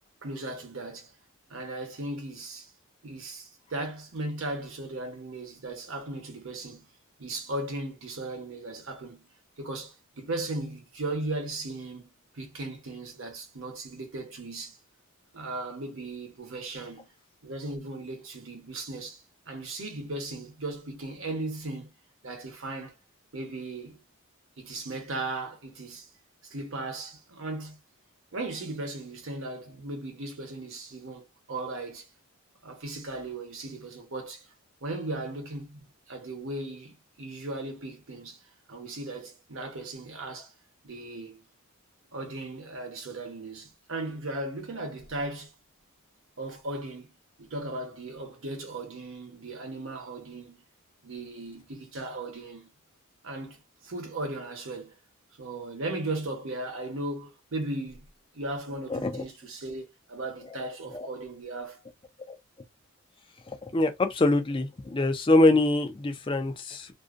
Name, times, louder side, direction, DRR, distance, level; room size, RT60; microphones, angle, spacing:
voice 1, 0.2-1.1 1.5-2.7 3.0-6.9 7.2-9.2 9.6-14.8 15.3-17.1 17.4-21.9 22.2-22.9 23.3-24.0 24.6-26.1 26.4-27.8 28.3-32.1 32.6-34.5 34.8-38.4 38.7-40.5 40.8-41.4 42.1-45.5 46.4-47.1 47.4-50.7 51.0-52.7 53.2-53.6 53.8-55.0 55.4-58.1 58.3-61.8, right 2 dB, 60° right, 0.9 m, -37 dB
voice 2, 58.9-59.2 60.9-61.1 62.3-62.4 63.6-66.9, left 2 dB, 25° left, 0.4 m, -24 dB
2.5 x 2.1 x 2.5 m
head